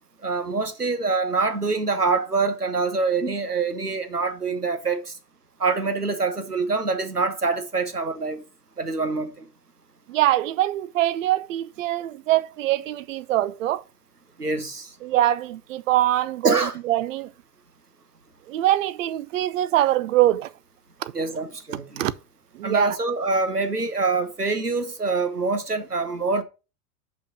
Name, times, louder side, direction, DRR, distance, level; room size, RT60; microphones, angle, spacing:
voice 1, 0.2-5.1 5.6-8.4 8.8-9.5 14.4-14.9 16.4-16.7 21.1-22.0 22.6-26.4, right 3 dB, 90° right, 1.1 m, -25 dB
voice 2, 10.1-13.8 15.0-17.3 18.5-20.5 21.0-21.1 21.7-22.1 22.5-23.0, right 14 dB, 55° right, 0.7 m, -23 dB
5.7 x 5.3 x 6.0 m
figure-of-eight pair, 85°, 45 cm